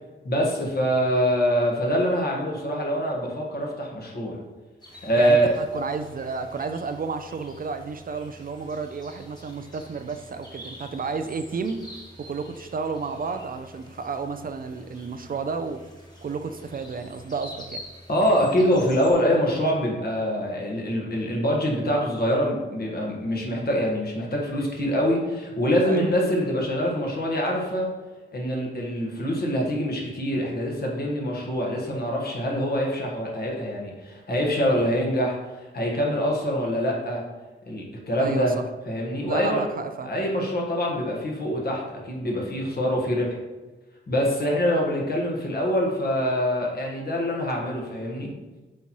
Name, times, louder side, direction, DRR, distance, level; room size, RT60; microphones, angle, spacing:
voice 1, 0.2-4.4 5.0-5.5 18.1-27.9 28.3-35.3 35.6-37.2 37.7-38.6 38.9-39.6 40.0-43.4 44.1-48.3, equal, 50° left, -2 dB, 1.4 m, -24 dB
sound 1, 4.8-19.1, left 1 dB, 20° left, 1.2 m, -46 dB
voice 2, 4.9-11.8 12.2-15.8 16.2-17.8 25.8-26.1 38.2-38.6 39.3-40.1, right 4 dB, 45° right, 8 dB, 0.4 m, -32 dB
8.2 x 4.2 x 3.0 m, 1.2 s
wide cardioid pair, 145°, 21 cm